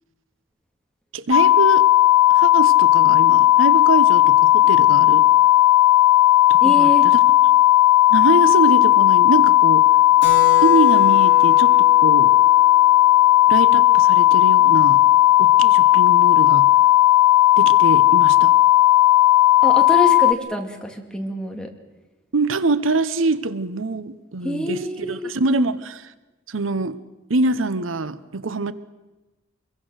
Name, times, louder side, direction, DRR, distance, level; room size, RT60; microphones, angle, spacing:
voice 1, 1.1-1.9 2.3-5.3 6.5-7.2 7.5-7.6 8.1-9.9 10.6-12.3 13.5-15.0 15.4-16.7 17.6-18.5 22.3-26.1 26.5-27.0 27.3-28.7, right 3 dB, 85° right, 14 dB, 0.9 m, -24 dB
sound 1, 1.3-20.3, left 15 dB, 85° left, 0.9 m, -14 dB
voice 2, 6.6-7.1 19.6-21.7 24.4-25.3, left 1 dB, 5° left, 2 dB, 2.4 m, -26 dB
Keyboard (musical), 10.2-14.3, left 5 dB, 65° left, 2.9 m, -31 dB
25.0 x 22.5 x 6.5 m, 1.1 s
head